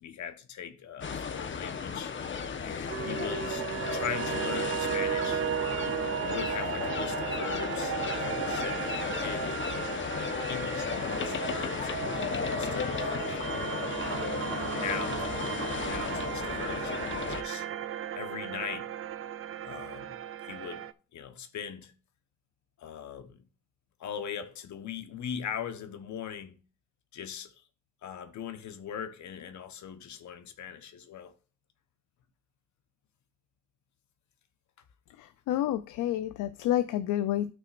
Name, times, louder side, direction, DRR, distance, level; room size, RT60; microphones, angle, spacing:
voice 1, 0.0-2.1 2.6-3.6 3.9-5.4 6.2-12.1 12.5-13.9 14.7-17.7 18.1-18.9 19.6-20.8 21.1-21.9 22.8-23.4 24.0-26.6 27.1-27.5 28.0-31.3, left 8 dB, 70° left, 1.2 m, -40 dB
sound 1, 1.0-17.4, left 6 dB, 40° left, 1.1 m, -34 dB
sound 2, 2.9-20.9, right 9 dB, 50° right, 0.6 m, -35 dB
voice 2, 35.2-37.5, left 12 dB, 90° left, 0.6 m, -29 dB
13.0 x 6.1 x 2.5 m
cardioid pair, 90°, 30 cm